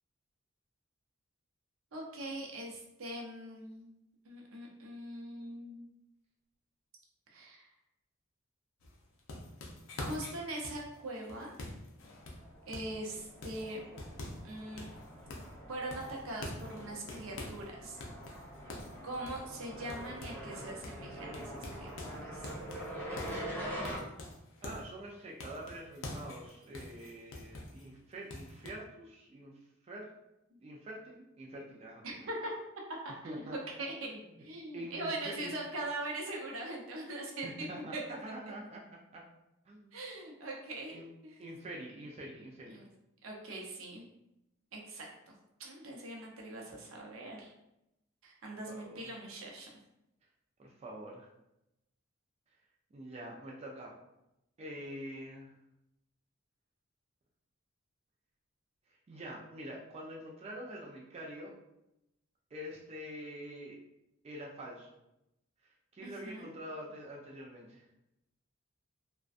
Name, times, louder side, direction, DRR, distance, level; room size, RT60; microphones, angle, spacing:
voice 1, 1.9-3.9 4.2-5.9 7.3-7.7 10.0-11.5 12.7-13.8 14.4-14.9 15.7-18.0 19.0-21.9 22.2-22.5 32.0-32.5 33.0-33.4 33.8-34.1 34.4-37.7 37.9-38.0 39.9-41.0 41.2-41.4 42.7-42.9 43.2-44.0 44.7-45.1 45.6-47.5 48.2-49.7 66.0-66.5, right 1 dB, 80° right, -1 dB, 0.6 m, -42 dB
sound 1, 8.8-13.0 13.4-14.5 14.8-15.6 15.9-17.7 18.0-20.6 20.8-21.0 21.3-24.9 25.4-27.9 28.3-28.7, left 1 dB, 75° left, 0.5 m, -45 dB
sound 2, 12.3-24.0, equal, 10° left, 0.7 m, -45 dB
voice 2, 24.6-29.6 29.8-30.1 30.6-32.2 33.2-33.6 34.1-34.4 34.7-35.5 37.4-38.8 39.1-39.2 39.7-39.9 40.9-41.1 41.4-42.8 48.7-49.1 50.6-51.3 52.9-53.9 54.6-55.5 59.1-61.5 62.5-63.8 64.2-65.0 65.6-67.9, right 1 dB, 30° right, -2 dB, 0.3 m, -46 dB
2.5 x 2.1 x 2.4 m, 0.87 s
head